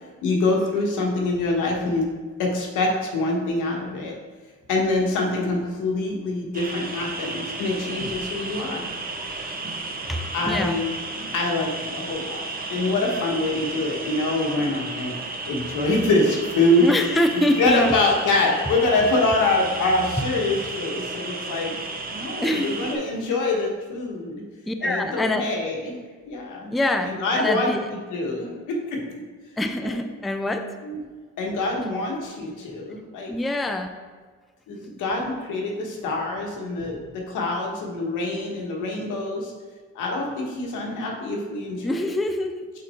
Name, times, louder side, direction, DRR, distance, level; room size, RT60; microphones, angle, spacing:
voice 1, 0.2-2.1 2.4-4.1 4.7-8.9 10.3-10.9 11.3-15.1 15.4-16.9 17.3-21.7 22.1-24.4 24.8-25.9 26.3-26.7 27.0-29.0 29.8-30.0 30.8-31.0 31.4-33.3 34.7-39.5 39.9-42.1, left 2 dB, 85° left, 0 dB, 1.4 m, -25 dB
sound 1, 6.5-23.0, right 3 dB, 30° right, 0.9 m, -33 dB
voice 2, 10.1-10.8 16.8-18.0 20.5-20.6 22.4-22.9 24.7-25.5 26.7-27.9 29.6-30.7 33.3-33.9 41.8-42.7, left 1 dB, ahead, 6 dB, 0.4 m, -25 dB
5.9 x 4.4 x 4.3 m, 1.5 s
cardioid pair, 90°, 30 cm